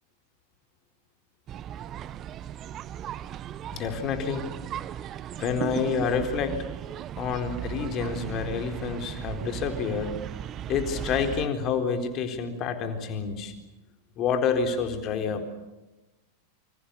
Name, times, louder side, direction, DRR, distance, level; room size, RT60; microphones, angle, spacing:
sound 1, 1.5-11.5, right 10 dB, 30° right, 1.0 m, -36 dB
voice 1, 3.7-4.4 5.4-6.6 7.2-10.3 10.7-13.6 14.2-15.5, left 6 dB, 35° left, 6 dB, 4.0 m, -28 dB
28.5 x 25.5 x 7.0 m, 1.0 s
figure-of-eight pair, 90°, 0 cm